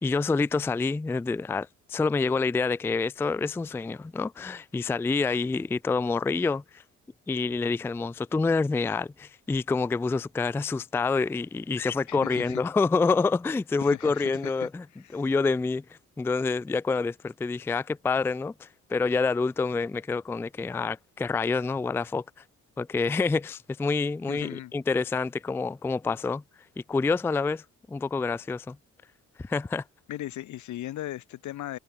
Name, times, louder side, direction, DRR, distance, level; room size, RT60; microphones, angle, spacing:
voice 1, 0.0-6.8 7.3-14.8 15.1-22.2 22.8-26.4 26.9-28.8 29.4-29.8, left 4 dB, 10° left, 0.3 m, -27 dB
voice 2, 12.1-12.6 13.8-14.5 15.0-15.2 24.3-24.7 30.1-31.8, left 14 dB, 75° left, 1.2 m, -37 dB
cardioid pair, 90°, 30 cm